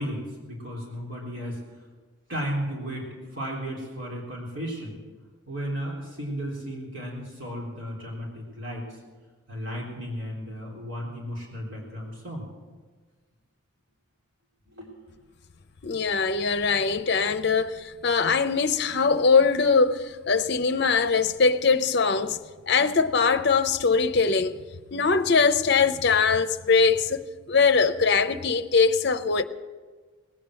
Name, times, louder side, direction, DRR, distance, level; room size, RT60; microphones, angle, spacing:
voice 1, 0.0-1.6 2.3-5.0 5.5-9.0 9.5-12.5 14.7-14.9, equal, 60° right, 3.6 m, -34 dB
voice 2, 15.8-22.4 22.7-24.5 24.9-27.2 27.5-29.4, left 5 dB, 50° left, 0.7 m, -22 dB
19.0 x 8.8 x 7.6 m
head